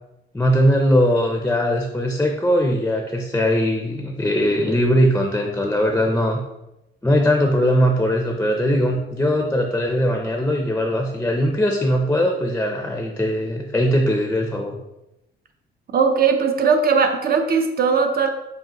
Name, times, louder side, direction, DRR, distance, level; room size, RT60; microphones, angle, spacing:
voice 1, 0.3-6.4 7.0-14.8, equal, 10° left, 2 dB, 0.5 m, -20 dB
voice 2, 15.9-18.3, right 5 dB, 50° right, 5 dB, 0.5 m, -18 dB
4.9 x 2.6 x 2.9 m, 0.93 s
cardioid pair, 90°, 20 cm